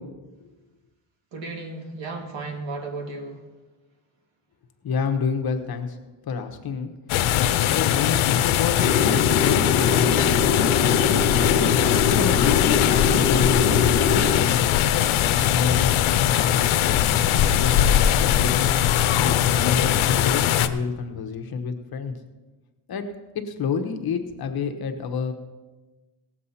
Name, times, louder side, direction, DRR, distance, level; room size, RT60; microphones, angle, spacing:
voice 1, 1.3-3.4, right 3 dB, 60° right, 2 dB, 2.3 m, -34 dB
voice 2, 4.8-6.0 6.3-6.9 7.6-10.4 10.9-14.9 15.5-17.0 17.6-18.8 19.1-22.1 22.9-23.0 23.3-25.3, left 5 dB, 50° left, 6 dB, 1.1 m, -29 dB
sound 1, 7.1-20.7, left 11 dB, 75° left, 0.8 m, -20 dB
sound 2, 8.8-14.4, left 4 dB, 30° left, 1.3 m, -24 dB
18.5 x 7.5 x 4.2 m, 1.2 s
cardioid pair, 145°, 49 cm